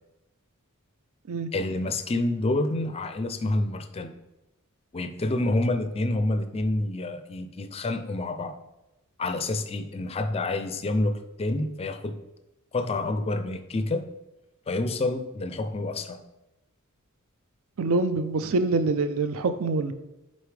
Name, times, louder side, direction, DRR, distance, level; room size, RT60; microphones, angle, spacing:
voice 1, 1.5-4.1 4.9-8.5 9.2-12.2 12.7-14.1 14.7-16.2, left 2 dB, 25° left, 9 dB, 0.4 m, -28 dB
voice 2, 17.8-19.9, right 3 dB, 65° right, 11 dB, 0.5 m, -25 dB
8.0 x 4.2 x 3.3 m, 0.97 s
head